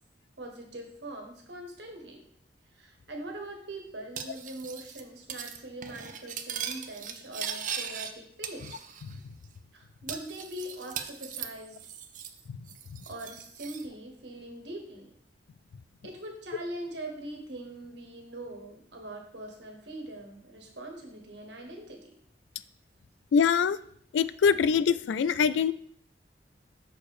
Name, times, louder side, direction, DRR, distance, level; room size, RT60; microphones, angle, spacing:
voice 1, 0.4-2.2 2.7-8.8 9.7-11.9 13.0-15.1 16.0-22.1, right 1 dB, 70° right, 2 dB, 1.5 m, -42 dB
Cutlery silverware, 4.2-5.0 5.3-5.6 5.8-8.1 8.4-9.1 9.4-9.5 10.1-12.4 12.7-13.8, right 8 dB, 45° right, 0.6 m, -39 dB
voice 2, 23.3-23.8 24.1-25.7, left 6 dB, 85° left, 16 dB, 0.3 m, -24 dB
6.5 x 4.5 x 4.8 m, 0.64 s
head